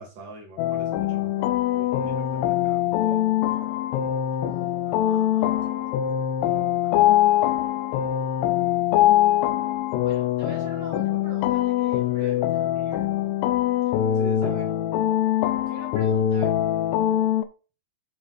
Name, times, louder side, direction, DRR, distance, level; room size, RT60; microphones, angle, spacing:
voice 1, 0.0-3.3 5.6-5.7 12.2-12.4 14.1-14.6, equal, 45° right, -2 dB, 3.9 m, -43 dB
sound 1, 0.6-17.4, left 12 dB, 85° left, 3.2 m, -23 dB
voice 2, 4.8-5.7 6.8-7.1 10.0-13.1 14.4-14.6 15.7-16.7, right 3 dB, 70° right, 0 dB, 1.2 m, -44 dB
9.8 x 4.3 x 4.3 m, 0.34 s
omnidirectional pair, 5.8 m